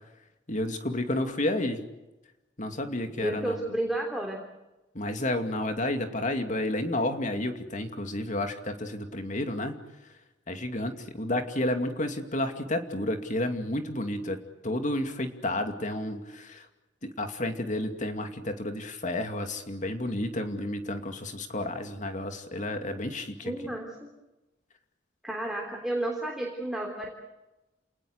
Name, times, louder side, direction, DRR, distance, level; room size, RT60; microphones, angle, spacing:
voice 1, 0.5-1.8 2.6-3.6 4.9-9.8 10.5-14.4 14.6-16.7 17.0-23.5, left 1 dB, 40° left, 6 dB, 2.5 m, -31 dB
voice 2, 3.2-4.4 23.4-24.1 25.2-27.1, right 1 dB, ahead, 0 dB, 3.3 m, -31 dB
29.0 x 19.0 x 8.1 m, 1.0 s
head